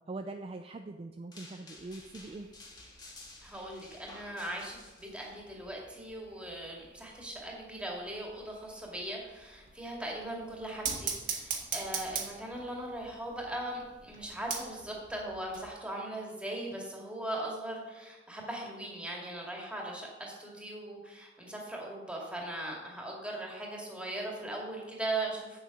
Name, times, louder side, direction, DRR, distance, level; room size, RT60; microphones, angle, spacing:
voice 1, 0.1-2.5, right 2 dB, 30° right, 6 dB, 0.4 m, -42 dB
sound 1, 1.3-5.3, left 2 dB, 25° left, 1.7 m, -52 dB
sound 2, 1.8-15.7, right 6 dB, 50° right, 1.5 m, -43 dB
voice 2, 3.4-25.6, right 1 dB, 5° right, -2 dB, 2.1 m, -39 dB
8.1 x 7.3 x 5.2 m, 1.2 s
head